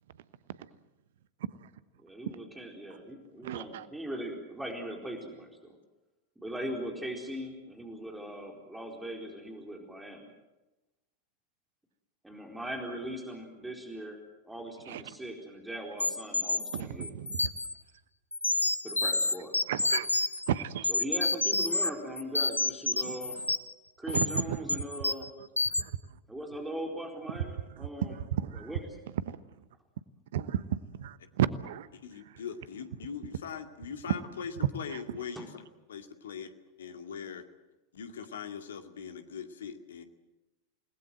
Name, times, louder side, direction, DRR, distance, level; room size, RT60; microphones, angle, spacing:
voice 1, 2.0-5.7 6.4-10.3 12.2-14.2 14.5-17.1 18.8-19.5 20.9-23.4 24.0-25.3 26.3-28.2 28.5-29.0 35.4-35.5, right 1 dB, 5° right, 1 dB, 4.3 m, -40 dB
voice 2, 3.4-3.9 14.9-15.0 16.7-17.5 19.7-20.1 20.5-20.9 23.0-23.2 24.1-24.8 25.4-25.9 27.8-28.7 29.3-29.4 30.3-31.9 34.1-34.2 34.9-35.0, right 11 dB, 55° right, 16 dB, 1.0 m, -33 dB
sound 1, 16.0-17.7 18.3-20.5 20.8-21.9 22.2-23.7 24.1-24.4 24.7-25.3 25.6-25.8, left 2 dB, 85° left, 0.9 m, -29 dB
voice 3, 32.0-35.6 35.9-36.5 36.8-37.4 37.9-40.0, left 7 dB, 65° left, 7 dB, 2.2 m, -41 dB
29.0 x 19.5 x 7.9 m, 1.0 s
figure-of-eight pair, 90°, 0 cm